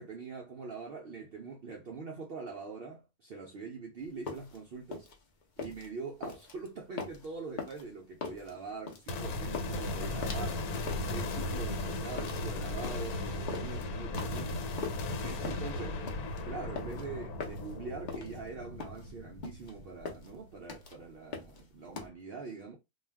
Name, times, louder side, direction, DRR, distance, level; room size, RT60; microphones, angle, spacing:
voice 1, 0.0-5.1 5.6-10.7 11.1-14.6 15.1-16.1 16.4-22.8, right 4 dB, 80° right, 0.5 m, -43 dB
sound 1, 4.0-22.1, left 5 dB, 55° left, 0.5 m, -43 dB
sound 2, 9.1-20.4, left 2 dB, 80° left, 1.2 m, -37 dB
2.4 x 2.2 x 3.3 m
omnidirectional pair, 1.6 m